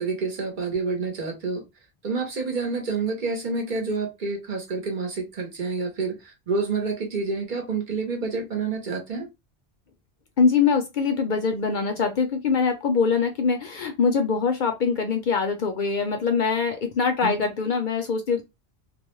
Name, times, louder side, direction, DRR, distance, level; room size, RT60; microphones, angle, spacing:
voice 1, 0.0-1.6 2.0-9.3 17.2-17.4, right 4 dB, 55° right, 0.8 m, -28 dB
voice 2, 10.4-18.4, left 5 dB, 60° left, 0.6 m, -23 dB
2.3 x 2.0 x 3.0 m
omnidirectional pair, 1.0 m